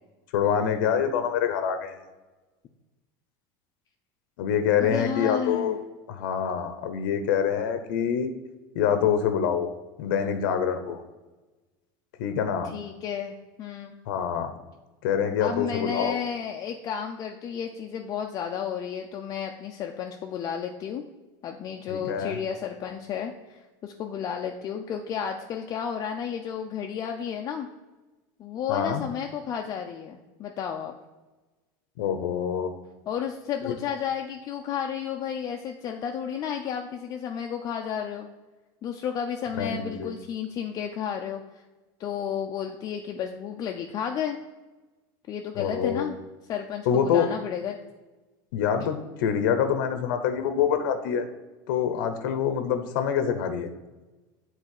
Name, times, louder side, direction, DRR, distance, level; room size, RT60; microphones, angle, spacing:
voice 1, 0.3-1.9 4.4-5.8 6.1-8.3 8.7-9.7 10.0-11.0 12.2-12.7 14.1-14.5 15.0-16.2 21.9-22.4 28.7-29.0 32.0-32.7 33.7-33.8 39.5-40.1 45.6-46.1 46.9-47.3 48.5-51.3 51.7-53.7, left 8 dB, 85° left, 8 dB, 0.8 m, -25 dB
voice 2, 4.8-5.8 12.6-14.0 15.4-21.0 21.4-27.7 28.4-30.9 33.1-38.3 38.8-41.4 42.0-44.4 45.3-46.1 46.5-47.8, left 8 dB, 35° left, 2 dB, 0.5 m, -32 dB
7.4 x 4.1 x 6.5 m, 1.2 s
supercardioid pair, 135°, 11 cm